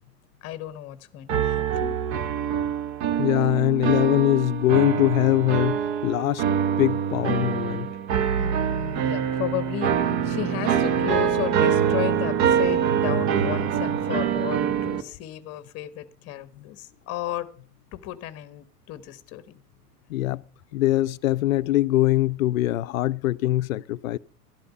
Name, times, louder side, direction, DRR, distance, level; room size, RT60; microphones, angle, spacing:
voice 1, 0.4-2.0 8.4-17.5 17.9-19.6, left 14 dB, 30° left, 1.1 m, -34 dB
sound 1, 1.3-15.0, right 8 dB, 35° right, 1.3 m, -24 dB
voice 2, 3.2-6.4 6.8-7.9 20.1-20.4 20.7-24.2, left 15 dB, 60° left, 0.6 m, -22 dB
12.0 x 11.5 x 5.5 m
figure-of-eight pair, 95°, 48 cm